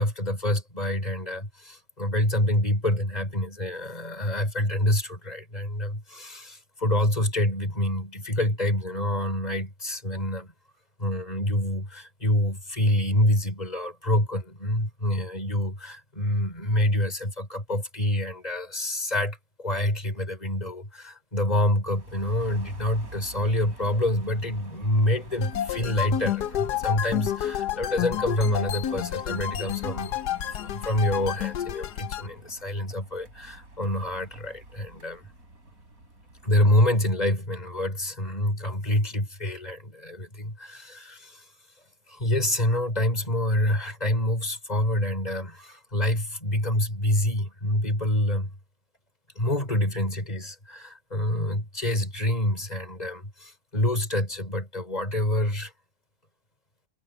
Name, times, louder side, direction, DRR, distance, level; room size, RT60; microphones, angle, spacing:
voice 1, 0.0-10.5 11.0-30.2 30.6-35.2 36.4-41.5 42.1-48.5 49.4-55.7, left 1 dB, 25° left, 5.5 m, -27 dB
sound 1, 21.9-36.5, right 2 dB, 60° right, 6.6 m, -48 dB
sound 2, 25.4-32.3, left 11 dB, 90° left, 1.4 m, -30 dB
omnidirectional pair, 1.7 m